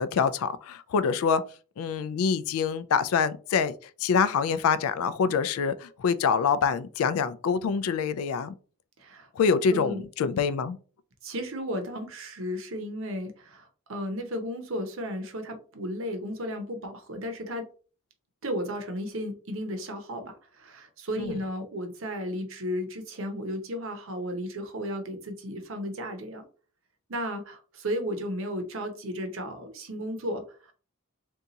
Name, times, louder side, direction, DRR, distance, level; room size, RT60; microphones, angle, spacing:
voice 1, 0.0-1.4 1.8-3.7 4.0-8.5 9.4-10.8 21.2-21.3, left 6 dB, 80° left, 0.3 m, -25 dB
voice 2, 9.0-9.3 9.7-10.0 11.2-17.7 18.4-26.4 27.1-30.7, equal, 65° right, 0.7 m, -34 dB
2.7 x 2.3 x 3.9 m
head